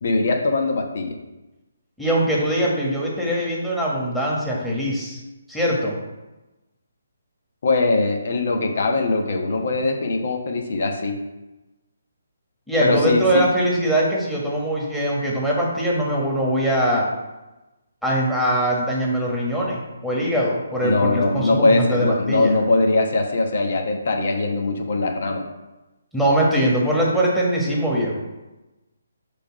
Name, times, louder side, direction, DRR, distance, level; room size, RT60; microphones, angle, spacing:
voice 1, 0.0-1.2 7.6-11.2 12.8-13.5 20.8-25.4, left 3 dB, 55° left, 3 dB, 1.2 m, -21 dB
voice 2, 2.0-5.2 5.5-6.0 12.7-17.1 18.0-22.5 26.1-28.2, right 1 dB, ahead, -5 dB, 1.6 m, -22 dB
6.9 x 3.6 x 6.0 m, 1.1 s
figure-of-eight pair, 150°, 0 cm